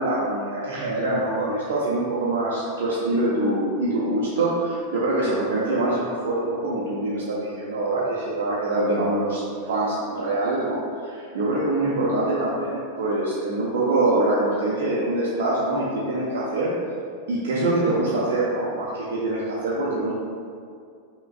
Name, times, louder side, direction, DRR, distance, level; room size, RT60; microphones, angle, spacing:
voice 1, 0.0-16.7 17.3-20.1, right 2 dB, 60° right, -7 dB, 0.7 m, -24 dB
5.7 x 3.0 x 2.5 m, 2.3 s
figure-of-eight pair, 90°, 0 cm